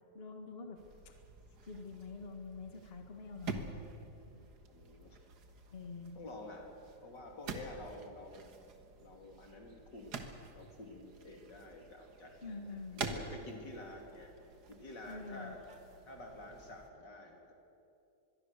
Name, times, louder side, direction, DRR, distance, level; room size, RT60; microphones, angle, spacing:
voice 1, 0.1-1.2 1.7-4.4 5.7-6.1 12.4-13.1 15.1-15.6, left 4 dB, 35° left, 4 dB, 1.9 m, -47 dB
sound 1, 0.7-16.9, right 4 dB, 65° right, 2.0 m, -48 dB
voice 2, 4.7-5.2 5.8-6.7 7.0-8.5 9.0-14.3 14.7-15.6 16.1-17.5, left 1 dB, 75° left, 1 dB, 3.8 m, -49 dB
25.0 x 22.0 x 6.7 m, 2.7 s
omnidirectional pair, 1.9 m